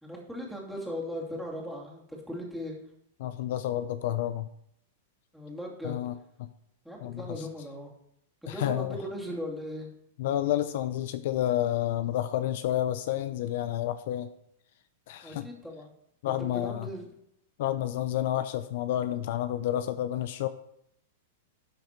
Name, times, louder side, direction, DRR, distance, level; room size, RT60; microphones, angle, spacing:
voice 1, 0.0-2.7 5.3-6.0 6.8-7.9 8.4-9.9 15.2-15.9 16.3-17.1, equal, ahead, -3 dB, 2.4 m, -38 dB
voice 2, 3.2-4.5 5.8-6.1 7.0-7.2 8.5-8.9 10.2-14.3 15.1-15.5 16.2-16.9 17.6-20.5, left 12 dB, 60° left, 12 dB, 0.5 m, -30 dB
11.5 x 6.4 x 4.5 m, 0.76 s
supercardioid pair, 145°, 0 cm